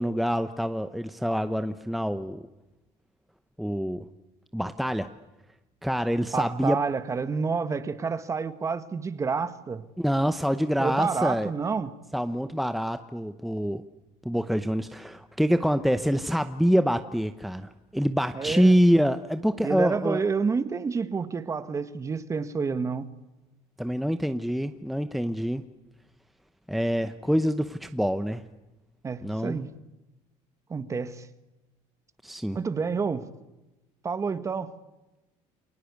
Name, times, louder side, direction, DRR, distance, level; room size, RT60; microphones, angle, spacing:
voice 1, 0.0-2.4 3.6-4.0 4.5-5.1 5.8-6.8 10.0-11.5 12.1-13.8 14.2-20.2 23.8-25.7 26.7-28.5 29.2-29.6 32.2-32.6, equal, ahead, 0.9 m, -26 dB
voice 2, 6.3-9.9 10.8-11.9 18.3-18.8 19.6-23.1 29.0-29.7 30.7-31.3 32.5-33.3 34.0-34.8, right 5 dB, 25° right, 1.5 m, -29 dB
29.0 x 23.0 x 8.3 m
cardioid pair, 135°, 13 cm